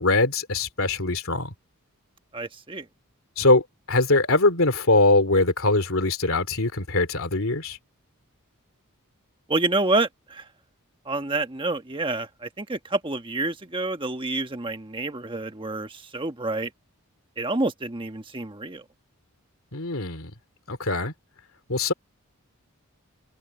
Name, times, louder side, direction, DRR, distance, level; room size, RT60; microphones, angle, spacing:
voice 1, 0.0-1.5 3.4-7.8 19.7-20.3 20.7-21.1 21.7-21.9, left 2 dB, 65° left, 3.0 m, -22 dB
voice 2, 2.3-2.9 9.5-10.5 11.0-16.7 17.4-18.8, right 2 dB, 20° right, 1.3 m, -28 dB
head